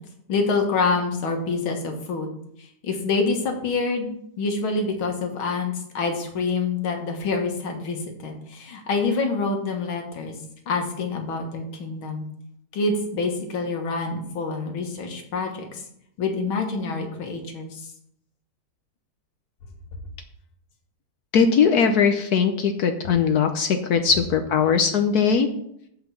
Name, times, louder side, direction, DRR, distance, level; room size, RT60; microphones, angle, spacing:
voice 1, 0.3-2.3 2.6-4.1 4.4-10.4 10.7-12.3 12.7-15.8 16.2-17.9, left 4 dB, 90° left, 3 dB, 2.3 m, -26 dB
voice 2, 21.3-25.5, left 6 dB, 60° left, 6 dB, 1.1 m, -20 dB
7.9 x 5.7 x 7.1 m, 0.72 s
omnidirectional pair, 2.2 m